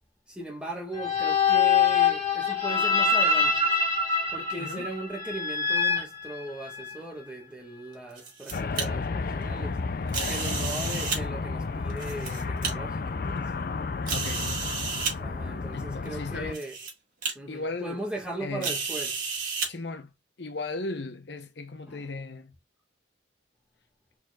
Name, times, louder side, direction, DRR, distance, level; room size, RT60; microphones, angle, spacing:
voice 1, 0.3-3.7 4.3-9.8 10.3-13.5 15.2-16.8 17.3-19.3 21.9-22.1, right 2 dB, 5° right, 1.7 m, -38 dB
sound 1, 0.9-7.0, left 5 dB, 20° left, 2.6 m, -25 dB
sound 2, 7.9-8.8 10.1-11.2 11.9-12.7 13.4-13.5 14.1-15.1 16.0-16.1 16.5-16.9 17.2-17.3 18.6-19.7, right 5 dB, 45° right, 1.7 m, -32 dB
sound 3, 8.5-16.5, left 4 dB, 50° left, 0.4 m, -32 dB
voice 2, 14.1-14.7 15.7-16.6 17.5-18.0 18.4-18.8 19.7-20.1 20.4-22.5, left 3 dB, 70° left, 0.8 m, -36 dB
4.5 x 4.3 x 2.4 m
head